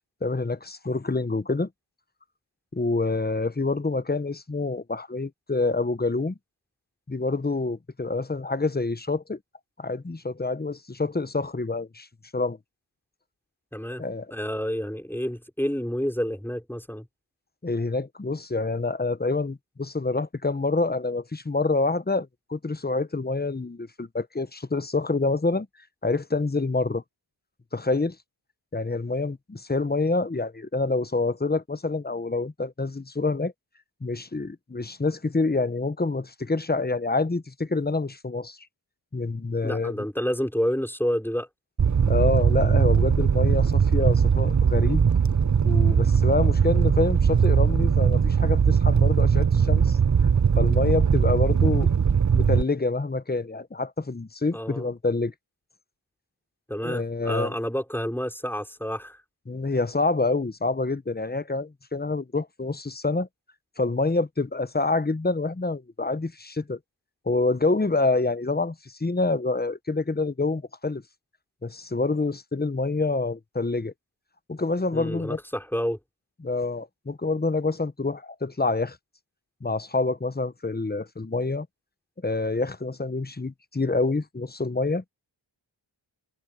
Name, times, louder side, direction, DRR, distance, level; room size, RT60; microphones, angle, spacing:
voice 1, 0.2-1.7 2.7-6.4 7.1-9.4 9.8-12.1 12.3-12.6 14.0-14.3 17.6-25.7 26.0-27.0 27.7-28.2 28.7-33.5 34.0-38.6 39.1-40.0 42.1-45.0 45.6-50.0 50.6-51.9 52.3-55.3 56.8-57.5 59.5-63.3 63.8-66.8 67.3-71.0 71.6-73.9 74.5-75.4 76.4-79.0 79.6-81.7 82.2-85.0, left 3 dB, 20° left, 1.0 m, -27 dB
voice 2, 13.7-14.0 14.3-17.1 39.6-41.5 54.5-54.9 56.7-59.2 74.9-76.0, equal, 5° left, 4.5 m, -29 dB
Fire, 41.8-52.6, right 7 dB, 40° right, 0.8 m, -20 dB
wide cardioid pair, 65°, 46 cm